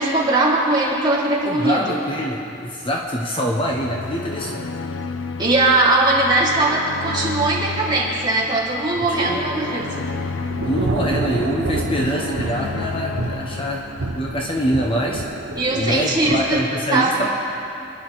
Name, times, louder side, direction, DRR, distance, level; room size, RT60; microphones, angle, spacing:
voice 1, 0.0-1.9 5.4-10.1 15.6-16.6 16.9-17.1, right 2 dB, 25° right, -6 dB, 3.1 m, -20 dB
voice 2, 1.4-4.6 9.0-9.5 10.6-15.2 15.7-17.3, equal, 25° left, -1 dB, 1.2 m, -24 dB
sound 1, 3.6-14.9, left 4 dB, 80° left, 0.6 m, -32 dB
Thunder / Rain, 9.3-16.7, right 2 dB, 85° right, 0.9 m, -29 dB
27.5 x 11.0 x 4.2 m, 2.9 s
head